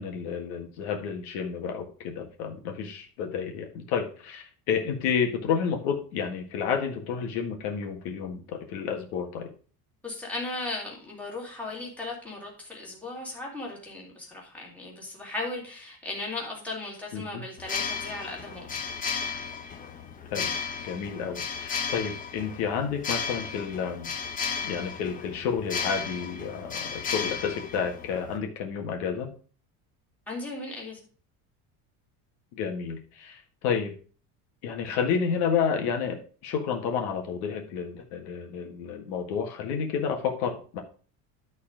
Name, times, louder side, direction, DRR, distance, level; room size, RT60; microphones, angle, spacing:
voice 1, 0.0-9.5 17.1-17.4 20.3-20.5 20.8-24.1 24.6-29.3 32.5-33.9 34.6-40.8, left 6 dB, 75° left, 3 dB, 1.7 m, -30 dB
voice 2, 10.0-18.8 30.3-31.0, left 2 dB, 5° left, -4 dB, 2.3 m, -37 dB
sound 1, 17.6-28.4, left 6 dB, 20° left, 0.8 m, -34 dB
11.5 x 4.2 x 5.0 m, 0.40 s
cardioid pair, 170°, 39 cm